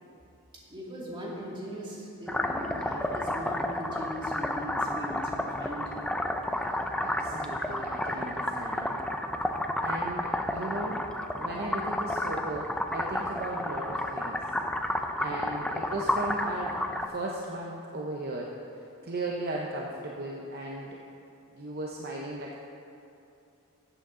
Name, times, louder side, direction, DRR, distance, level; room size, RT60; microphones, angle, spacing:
voice 1, 0.7-5.9, equal, 25° right, -5 dB, 2.3 m, -39 dB
sound 1, 2.3-17.1, left 1 dB, 5° left, 0.4 m, -31 dB
voice 2, 7.0-9.0 9.8-11.0 11.3-14.4 15.2-21.0 21.6-22.6, right 2 dB, 45° right, -2 dB, 0.8 m, -36 dB
13.5 x 8.2 x 3.8 m, 2.7 s
head